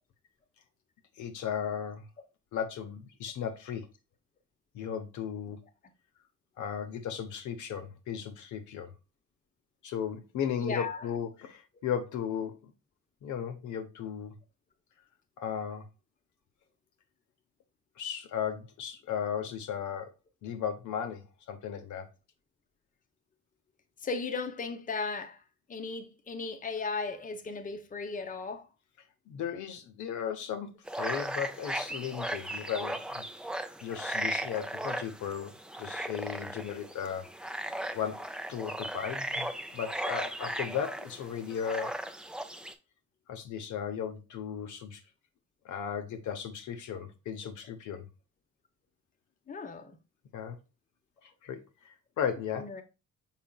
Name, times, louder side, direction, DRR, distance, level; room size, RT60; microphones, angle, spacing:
voice 1, 1.2-2.1 2.5-3.9 4.7-5.6 6.6-8.9 9.8-12.7 13.2-14.4 15.4-15.9 18.0-20.1 20.4-22.1 29.3-30.7 31.0-33.2 33.8-37.3 37.9-38.2 38.5-39.5 39.7-41.9 43.3-45.0 45.6-48.1 50.3-50.6 51.2-52.7, left 8 dB, 75° left, 0.8 m, -36 dB
voice 2, 10.6-11.1 24.0-25.4 25.7-28.7 49.5-50.0 52.6-52.8, left 4 dB, 25° left, 0.7 m, -36 dB
sound 1, 30.9-42.7, right 1 dB, 5° right, 0.4 m, -37 dB
5.6 x 4.1 x 2.3 m
cardioid pair, 90°, 30 cm